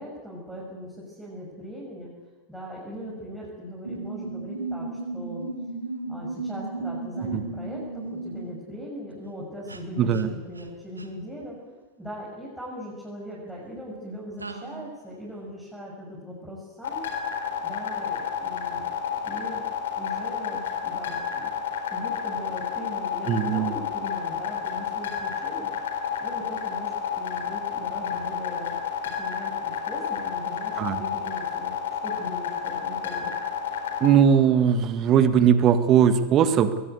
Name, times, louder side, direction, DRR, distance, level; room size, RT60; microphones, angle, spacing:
voice 1, 0.0-2.1 2.5-4.9 5.1-5.4 6.1-11.6 12.0-17.0 17.6-18.9 19.2-19.6 19.9-21.5 21.9-25.7 26.2-28.8 29.1-31.7 32.0-33.3, equal, 5° right, -5 dB, 6.7 m, -39 dB
sound 1, 3.8-8.7 9.7-9.8 10.1-10.2 10.5-10.7 11.0-11.1 14.4-14.9, right 3 dB, 80° right, 1.7 m, -35 dB
voice 2, 10.0-10.3 23.3-23.7 30.8-31.0 34.0-36.8, right 8 dB, 35° right, 11 dB, 1.7 m, -19 dB
sound 2, 16.8-34.1, left 8 dB, 60° left, 3.9 m, -30 dB
22.0 x 18.5 x 8.2 m, 1.3 s
figure-of-eight pair, 90°, 0 cm